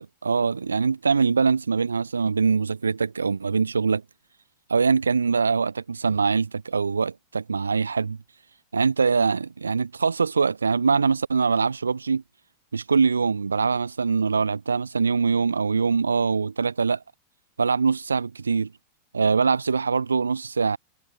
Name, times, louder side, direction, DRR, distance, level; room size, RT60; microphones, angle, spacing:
voice 1, 0.0-4.0 4.7-8.2 8.7-12.2 12.7-17.0 17.6-18.7 19.1-20.8, right 5 dB, 75° right, 6.1 m, -23 dB
figure-of-eight pair, 90°, 0 cm